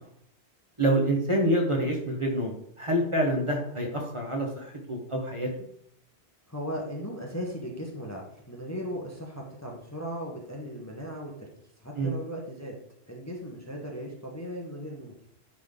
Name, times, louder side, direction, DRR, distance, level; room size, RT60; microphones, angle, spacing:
voice 1, 0.8-5.5 12.0-12.1, right 1 dB, 30° right, 0 dB, 1.3 m, -27 dB
voice 2, 6.5-11.5 11.8-12.7 13.1-15.3, equal, 15° left, -1 dB, 1.0 m, -37 dB
9.8 x 3.7 x 3.7 m, 0.70 s
omnidirectional pair, 1.1 m